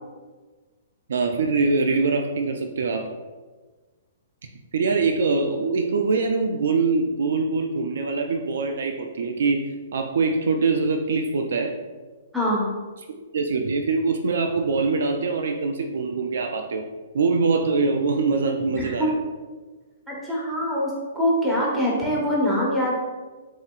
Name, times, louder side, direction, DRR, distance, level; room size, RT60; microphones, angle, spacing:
voice 1, 1.1-3.1 4.4-11.7 13.3-16.9 17.1-19.1, right 4 dB, 70° right, 5 dB, 0.4 m, -23 dB
voice 2, 12.3-12.6 18.7-19.1 20.1-22.9, equal, 5° right, -5 dB, 1.4 m, -24 dB
7.2 x 2.8 x 2.4 m, 1.3 s
hypercardioid pair, 125°, 0 cm